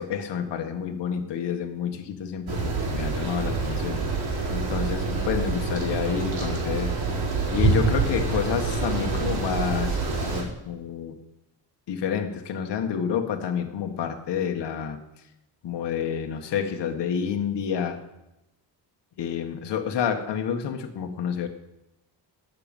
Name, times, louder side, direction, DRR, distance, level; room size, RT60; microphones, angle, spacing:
voice 1, 0.0-4.0 4.5-6.9 7.5-11.1 11.9-15.0 15.6-18.0 19.2-21.5, left 8 dB, 70° left, 4 dB, 1.6 m, -29 dB
sound 1, 2.5-10.4, right 4 dB, 60° right, 4.3 m, -26 dB
14.0 x 6.8 x 9.0 m, 0.90 s
cardioid pair, 145°, 43 cm